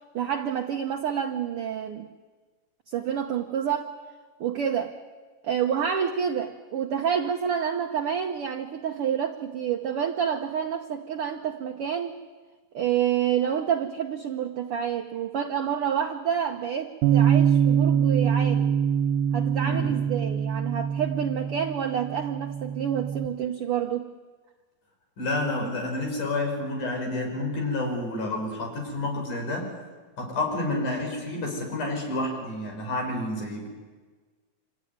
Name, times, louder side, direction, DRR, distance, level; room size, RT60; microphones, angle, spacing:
voice 1, 0.1-2.1 2.9-3.9 4.4-5.0 5.4-12.2 12.7-18.7 19.3-24.1, right 8 dB, 60° right, 4 dB, 1.5 m, -28 dB
Bass guitar, 17.0-23.3, right 8 dB, 80° right, 2.4 m, -24 dB
voice 2, 19.6-19.9 25.2-29.7 30.2-33.7, left 2 dB, 70° left, 2 dB, 7.1 m, -29 dB
27.0 x 16.0 x 9.5 m, 1.4 s
omnidirectional pair, 3.7 m